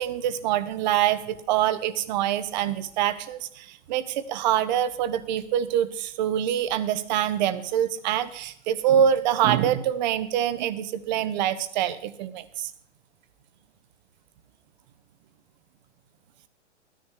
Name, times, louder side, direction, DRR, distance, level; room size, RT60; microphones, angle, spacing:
voice 1, 0.0-12.7, right 10 dB, 40° right, 14 dB, 0.9 m, -25 dB
13.0 x 10.0 x 4.6 m, 0.67 s
hypercardioid pair, 120°, 35 cm